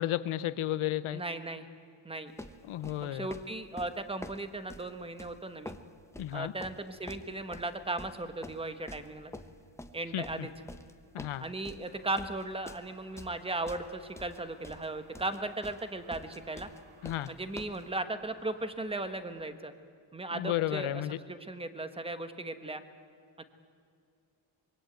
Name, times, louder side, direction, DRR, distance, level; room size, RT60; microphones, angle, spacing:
voice 1, 0.0-1.2 2.7-3.3 6.2-6.5 10.1-10.5 11.1-11.4 17.0-17.3 20.3-21.2, left 13 dB, 80° left, 15 dB, 1.1 m, -33 dB
voice 2, 1.1-1.7 2.0-2.3 3.0-5.8 6.3-9.3 9.9-10.5 11.4-16.7 17.3-19.7 20.1-21.0 21.3-22.8 23.4-23.5, right 2 dB, 10° right, 10 dB, 1.4 m, -37 dB
sound 1, 2.4-17.9, left 1 dB, 5° left, 1.0 m, -47 dB
Traffic noise roadway noise, 11.8-19.5, right 4 dB, 75° right, 3.4 m, -61 dB
25.0 x 23.0 x 9.2 m, 2.4 s
wide cardioid pair, 155°, 49 cm